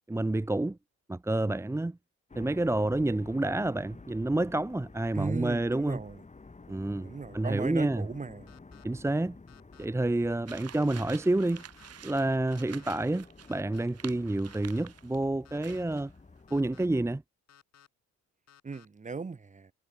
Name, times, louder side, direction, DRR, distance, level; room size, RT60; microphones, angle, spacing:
voice 1, 0.1-0.8 1.1-2.0 2.4-6.0 6.7-8.1 8.8-9.4 9.8-11.6 12.0-16.1 16.5-17.2, right 2 dB, 10° right, 0.9 m, -29 dB
sound 1, 2.3-17.1, left 3 dB, 25° left, 6.4 m, -52 dB
voice 2, 5.1-6.2 7.0-8.5 18.6-19.7, right 4 dB, 25° right, 1.3 m, -37 dB
sound 2, 8.5-8.8 9.5-9.9 10.5-10.9 11.5-11.9 12.5-12.9 13.5-13.9 14.5-14.8 15.4-15.8 16.5-16.9 17.5-17.9 18.5-18.9, left 8 dB, 55° left, 7.5 m, -58 dB
sound 3, 10.5-15.2 15.6-16.1, right 9 dB, 55° right, 1.9 m, -49 dB
cardioid pair, 90°, 30 cm